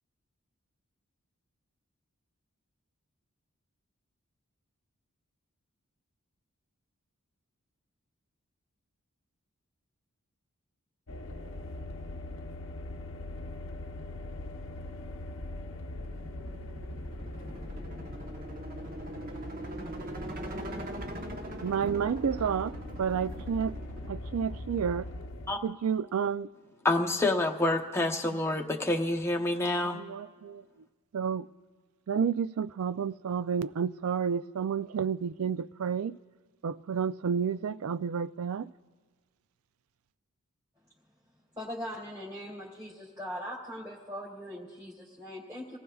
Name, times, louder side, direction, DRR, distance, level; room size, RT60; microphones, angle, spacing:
sound 1, 11.1-25.5, left 1 dB, 60° left, 0.7 m, -41 dB
sound 2, 16.0-24.1, right 1 dB, 40° right, 0.9 m, -42 dB
voice 1, 21.6-22.7 23.0-23.8 24.1-25.1 25.6-26.5 29.9-30.6 31.1-31.5 32.1-36.2 36.6-38.7, right 7 dB, 80° right, 0.4 m, -30 dB
voice 2, 26.8-30.0, left 2 dB, 10° left, 0.8 m, -27 dB
voice 3, 41.6-45.8, equal, 15° right, 2.2 m, -40 dB
28.5 x 18.5 x 2.3 m
head